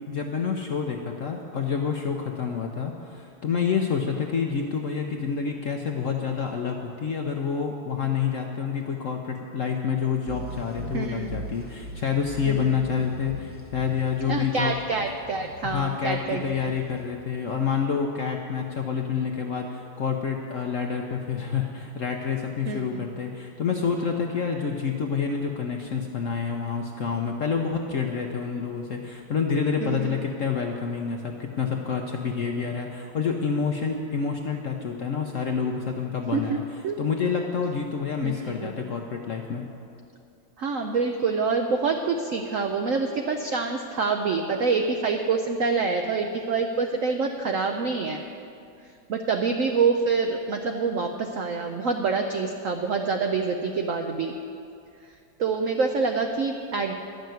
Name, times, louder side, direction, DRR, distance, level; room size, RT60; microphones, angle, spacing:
voice 1, 0.1-14.7 15.6-36.6 37.0-39.6, left 6 dB, 65° left, 2 dB, 0.8 m, -28 dB
sound 1, 10.3-17.7, equal, 10° right, 0.4 m, -41 dB
voice 2, 10.9-11.3 12.5-12.8 14.3-16.5 22.7-23.0 29.8-30.0 36.3-36.6 36.8-37.0 38.2-38.7 40.6-48.2 49.1-54.3 55.4-56.9, right 4 dB, 75° right, 4 dB, 0.7 m, -26 dB
11.5 x 6.6 x 9.2 m, 2.5 s
omnidirectional pair, 2.1 m